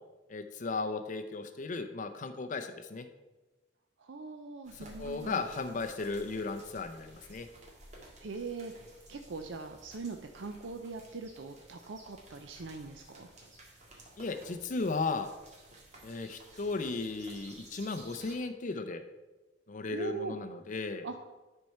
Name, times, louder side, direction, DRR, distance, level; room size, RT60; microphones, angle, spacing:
voice 1, 0.3-3.1 4.7-7.5 14.2-15.3 16.0-19.0 19.7-21.1, left 3 dB, 45° left, 7 dB, 0.5 m, -36 dB
voice 2, 4.0-5.4 8.2-13.3 19.9-20.4 21.0-21.2, right 4 dB, 80° right, 5 dB, 0.6 m, -41 dB
sound 1, 4.6-18.4, right 1 dB, 40° right, 1.9 m, -54 dB
10.0 x 4.5 x 5.6 m, 1.1 s
head